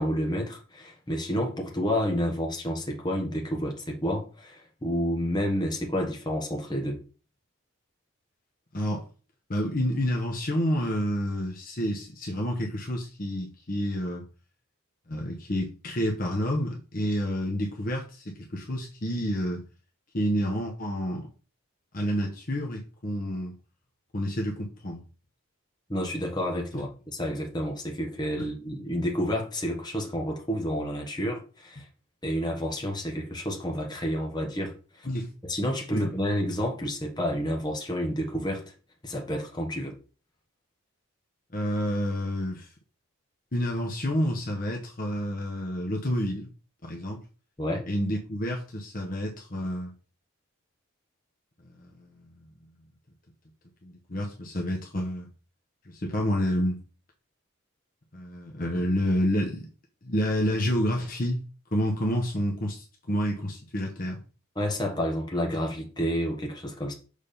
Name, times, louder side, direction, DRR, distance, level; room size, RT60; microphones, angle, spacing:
voice 1, 0.0-7.0 25.9-31.9 32.2-35.1 35.4-38.7 39.0-40.0 47.6-47.8 64.5-66.9, equal, 20° left, 1.4 m, -30 dB
voice 2, 8.7-9.0 9.5-14.2 15.1-19.6 20.1-21.3 21.9-23.5 24.1-25.0 26.7-26.8 28.4-28.5 35.0-35.3 35.9-36.0 41.5-42.7 43.5-46.5 46.8-47.2 47.9-49.9 51.6-52.3 53.8-55.3 55.9-56.8 58.1-59.7 60.0-61.4 61.7-64.2, equal, 40° left, 1.1 m, -29 dB
6.6 x 3.7 x 5.2 m
head